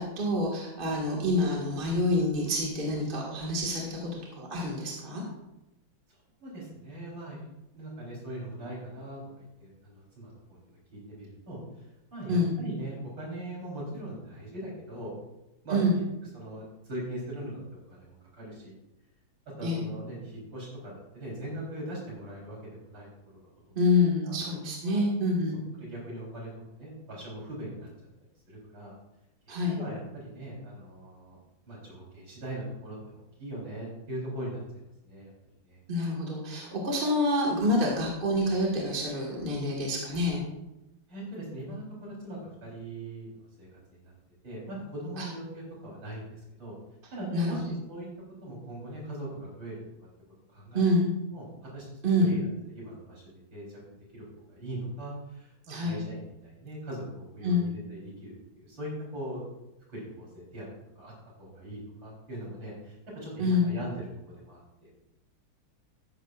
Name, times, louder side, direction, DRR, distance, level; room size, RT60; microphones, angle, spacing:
voice 1, 0.0-5.2 12.3-12.5 15.7-16.0 19.6-19.8 23.8-25.6 29.5-29.8 35.9-40.4 45.2-45.3 47.3-47.6 50.7-51.1 52.0-52.3 55.7-56.0 57.4-57.7 63.4-63.7, left 1 dB, 25° right, -3 dB, 2.0 m, -27 dB
voice 2, 6.1-7.5 7.7-11.8 12.1-15.1 15.6-15.8 16.3-18.7 19.6-23.1 23.7-23.8 24.2-24.4 24.8-25.0 25.8-26.5 26.8-27.9 28.5-28.9 29.7-31.4 31.7-34.6 35.0-35.3 35.6-35.8 41.1-44.1 44.4-46.7 47.1-48.1 48.4-49.8 50.5-50.8 51.3-53.8 54.1-59.4 59.9-60.7 61.0-61.1 61.4-64.1 64.3-64.9, right 1 dB, 60° right, -4 dB, 4.7 m, -40 dB
14.0 x 10.5 x 2.5 m, 0.92 s
omnidirectional pair, 2.3 m